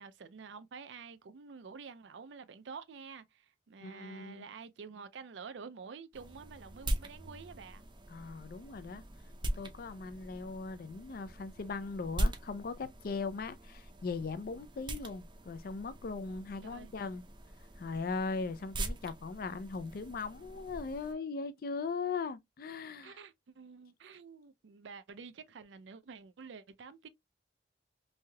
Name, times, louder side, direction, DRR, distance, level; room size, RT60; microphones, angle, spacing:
voice 1, 0.0-7.8 16.6-16.9 23.0-27.1, right 5 dB, 80° right, 0.4 m, -49 dB
voice 2, 3.8-4.4 8.1-9.0 9.6-17.2 17.8-23.2, left 4 dB, 55° left, 0.4 m, -39 dB
sound 1, 6.1-21.1, right 1 dB, 25° right, 0.5 m, -41 dB
3.2 x 2.7 x 2.2 m
head